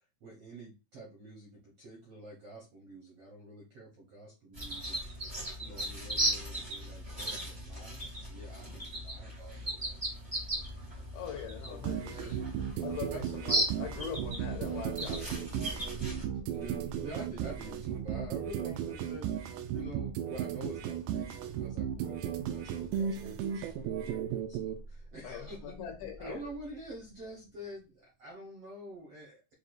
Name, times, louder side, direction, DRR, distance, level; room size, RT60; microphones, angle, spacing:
voice 1, 0.2-10.1 10.8-11.1 11.6-11.8 12.1-12.4 13.1-13.2 16.5-25.7 26.2-29.5, right 1 dB, 70° right, 1.4 m, -48 dB
sound 1, 4.5-16.2, right 1 dB, 40° right, 0.4 m, -37 dB
voice 2, 5.6-5.9 11.1-12.3 12.8-16.1 23.1-23.3 25.2-26.4, left 9 dB, 80° left, 2.7 m, -43 dB
sound 2, 10.5-28.2, right 1 dB, 65° left, 0.4 m, -51 dB
sound 3, 11.8-24.8, right 9 dB, 85° right, 2.0 m, -35 dB
6.5 x 2.4 x 2.5 m
omnidirectional pair, 4.5 m